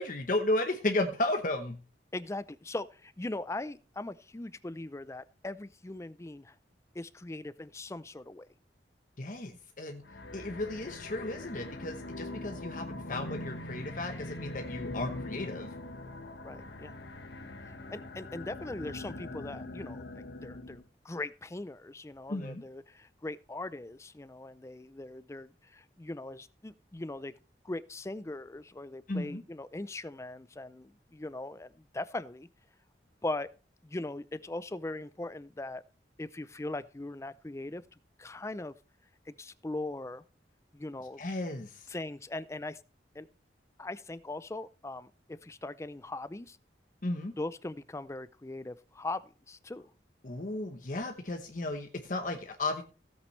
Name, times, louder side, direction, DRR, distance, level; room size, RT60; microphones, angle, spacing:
voice 1, 0.0-1.8 9.2-10.0 10.3-15.7 22.3-22.6 29.1-29.4 41.2-41.9 47.0-47.3 50.2-52.8, left 2 dB, 45° left, 1.0 m, -34 dB
voice 2, 2.1-6.5 6.9-8.5 16.4-16.9 17.9-27.3 27.6-32.5 33.2-33.5 33.8-35.8 36.2-37.8 38.2-38.7 39.3-40.2 40.7-41.2 41.9-42.8 43.1-43.3 43.8-46.6 47.4-49.9, left 2 dB, 15° left, 0.4 m, -40 dB
sound 1, 10.0-20.8, left 2 dB, 75° left, 1.4 m, -42 dB
16.0 x 8.4 x 3.2 m
head